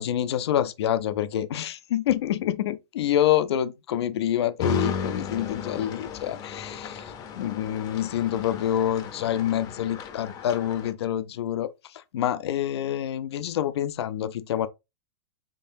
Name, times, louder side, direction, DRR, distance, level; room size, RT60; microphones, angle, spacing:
voice 1, 0.0-14.7, left 11 dB, 80° left, 0.4 m, -27 dB
sound 1, 4.6-10.9, left 6 dB, 25° left, 0.6 m, -34 dB
3.8 x 3.7 x 2.6 m
hypercardioid pair, 145°, 14 cm